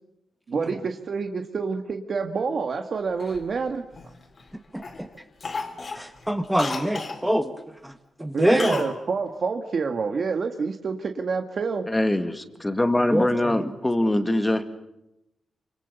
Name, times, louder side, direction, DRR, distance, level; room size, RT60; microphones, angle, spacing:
voice 1, 0.5-3.9 8.3-11.9, right 5 dB, 50° right, 1.7 m, -27 dB
Cough, 3.2-4.5 4.8-5.0 5.4-7.2 8.6-9.0 9.2-9.3, left 4 dB, 40° left, 3.4 m, -34 dB
voice 2, 4.7-5.1 6.0-7.5 7.8-7.9 8.2-8.8 13.1-13.6, equal, 5° right, 1.7 m, -24 dB
voice 3, 11.9-14.7, left 1 dB, 10° left, 1.9 m, -23 dB
28.0 x 26.0 x 6.9 m
wide cardioid pair, 140°, 0 cm